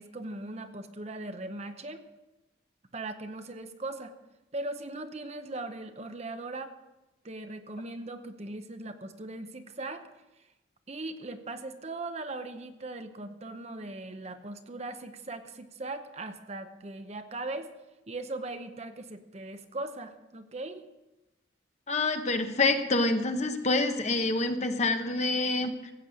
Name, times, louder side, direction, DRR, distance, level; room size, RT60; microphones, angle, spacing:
voice 1, 0.0-2.0 2.9-4.1 4.5-6.7 7.2-10.1 10.9-17.7 18.1-20.9, right 2 dB, 35° right, 8 dB, 0.8 m, -39 dB
voice 2, 21.9-25.9, left 2 dB, 35° left, 7 dB, 1.0 m, -27 dB
16.0 x 8.5 x 6.3 m, 1.0 s
head